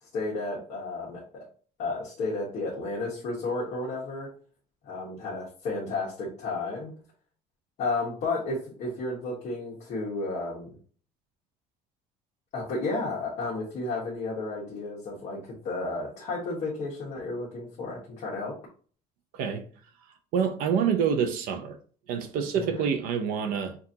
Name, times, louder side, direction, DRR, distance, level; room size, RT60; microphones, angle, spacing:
voice 1, 0.0-1.4 1.8-4.3 4.8-6.9 7.8-10.8 12.5-18.5 22.5-22.9, left 3 dB, 45° left, 1.3 m, -32 dB
voice 2, 19.3-19.6 20.3-21.8 22.1-23.8, right 7 dB, 65° right, 0.7 m, -27 dB
6.0 x 2.5 x 2.8 m
cardioid pair, 175°, 16 cm